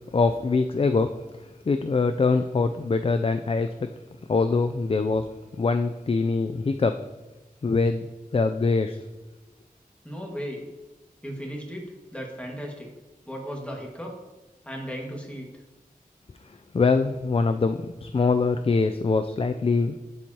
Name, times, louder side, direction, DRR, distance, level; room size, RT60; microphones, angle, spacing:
voice 1, 0.1-1.1 1.7-3.9 4.3-5.3 5.6-7.0 7.6-9.0 16.7-20.0, left 4 dB, 40° left, 8 dB, 0.4 m, -23 dB
voice 2, 10.0-10.7 11.2-12.9 13.3-14.1 14.7-15.5, equal, 10° left, 0 dB, 1.7 m, -36 dB
11.5 x 4.6 x 2.8 m, 1.1 s
wide cardioid pair, 45°, 15 cm